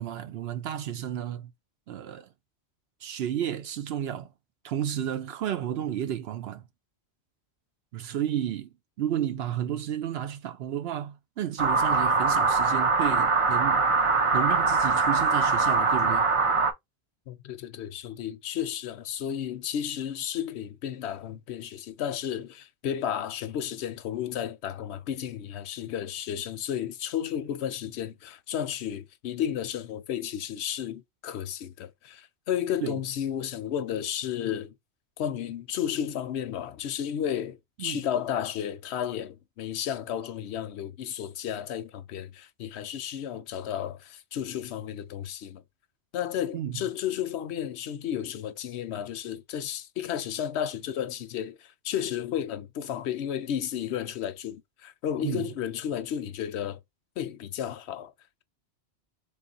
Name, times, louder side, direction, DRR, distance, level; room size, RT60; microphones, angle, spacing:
voice 1, 0.0-1.5 1.9-2.3 3.0-4.3 4.6-6.6 7.9-8.7 9.0-13.9 14.3-16.3 32.8-33.0 37.8-38.0 46.5-46.8 55.2-55.5, right 10 dB, 70° right, 0.8 m, -32 dB
sound 1, 11.6-16.7, right 4 dB, 40° right, 0.5 m, -23 dB
voice 2, 17.3-34.7 35.2-45.6 46.1-56.8 57.2-58.1, left 9 dB, 75° left, 0.9 m, -33 dB
3.5 x 2.4 x 3.8 m
omnidirectional pair, 1.1 m